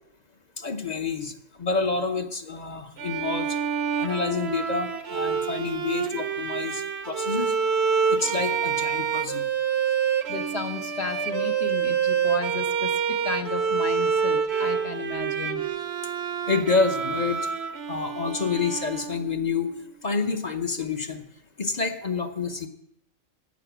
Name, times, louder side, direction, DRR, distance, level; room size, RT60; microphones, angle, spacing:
voice 1, 0.6-1.3 1.6-3.5 4.0-7.5 8.1-9.4 16.5-17.4 17.9-19.7 20.0-21.2 21.6-22.7, left 4 dB, 35° left, 7 dB, 0.9 m, -28 dB
Bowed string instrument, 3.0-19.5, right 7 dB, 55° right, 1.1 m, -27 dB
voice 2, 10.3-15.6, left 5 dB, 55° left, 5 dB, 1.2 m, -33 dB
13.5 x 9.2 x 6.0 m, 0.76 s
omnidirectional pair, 1.4 m